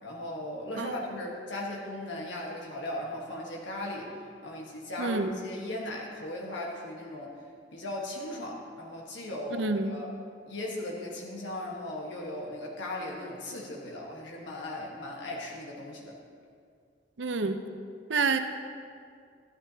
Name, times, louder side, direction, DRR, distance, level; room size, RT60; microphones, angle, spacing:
voice 1, 0.0-4.1 4.4-7.3 7.7-10.1 10.5-16.1, left 1 dB, 80° left, -2 dB, 1.4 m, -37 dB
voice 2, 5.0-5.3 9.5-10.0 17.2-17.6 18.1-18.4, right 4 dB, 85° right, 8 dB, 0.7 m, -28 dB
13.5 x 11.0 x 2.8 m, 2.2 s
head